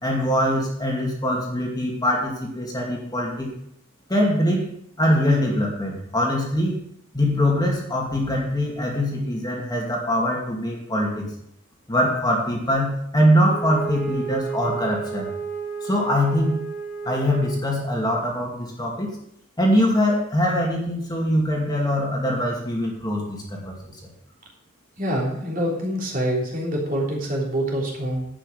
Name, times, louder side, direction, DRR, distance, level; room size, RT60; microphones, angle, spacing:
voice 1, 0.0-3.5 4.1-4.6 5.0-6.8 7.1-11.3 11.9-15.3 15.8-16.6 17.0-19.1 19.6-23.8, equal, 20° left, -2 dB, 2.4 m, -23 dB
Wind instrument woodwind instrument, 13.5-18.1, right 6 dB, 10° right, 3.2 m, -32 dB
voice 2, 25.0-28.3, equal, 40° right, -2 dB, 3.2 m, -25 dB
11.0 x 8.8 x 5.2 m, 0.73 s
head